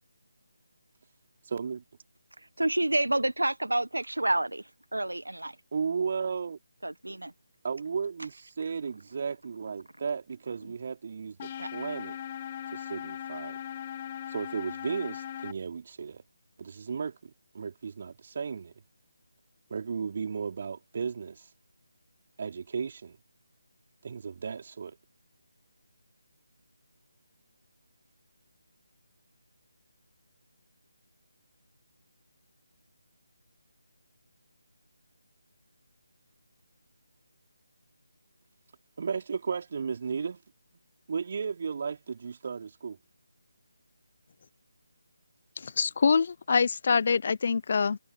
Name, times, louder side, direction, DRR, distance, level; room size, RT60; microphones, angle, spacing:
voice 1, 1.4-1.8 5.7-6.6 7.6-12.2 12.7-13.6 14.3-16.2 16.6-18.7 19.7-21.5 22.4-23.2 24.0-25.0 39.0-40.4 41.1-43.0, right 6 dB, 40° right, 4.0 m, -34 dB
voice 2, 2.4-5.6 6.8-7.3 10.6-10.7 11.6-11.7, right 1 dB, 75° right, 1.5 m, -29 dB
sound 1, 11.4-15.5, left 10 dB, 25° left, 1.7 m, -39 dB
voice 3, 45.6-48.0, left 5 dB, 45° left, 0.9 m, -25 dB
figure-of-eight pair, 155°, 0 cm